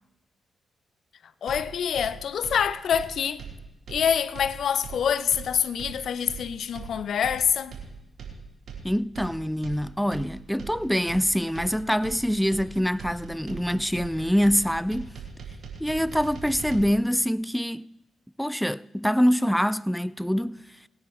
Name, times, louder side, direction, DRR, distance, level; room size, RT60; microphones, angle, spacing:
voice 1, 1.4-3.4 3.9-7.7, left 8 dB, 70° left, 0.6 m, -26 dB
sound 1, 1.5-16.8, right 6 dB, 70° right, 3.7 m, -40 dB
voice 2, 8.8-15.1 15.8-17.9 18.4-20.9, equal, ahead, 0.3 m, -25 dB
21.0 x 9.7 x 3.2 m
supercardioid pair, 50°, 0 cm